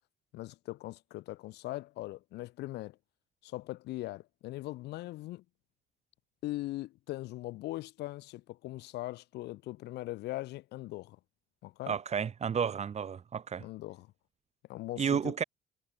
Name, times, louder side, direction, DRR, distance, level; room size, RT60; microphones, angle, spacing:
voice 1, 0.3-3.0 3.4-5.4 6.4-11.2 11.6-11.9 13.6-14.1 14.7-15.3, left 17 dB, 85° left, 4.8 m, -40 dB
voice 2, 11.9-13.7 15.0-15.4, right 7 dB, 40° right, 5.7 m, -32 dB
cardioid pair, 110°, 17 cm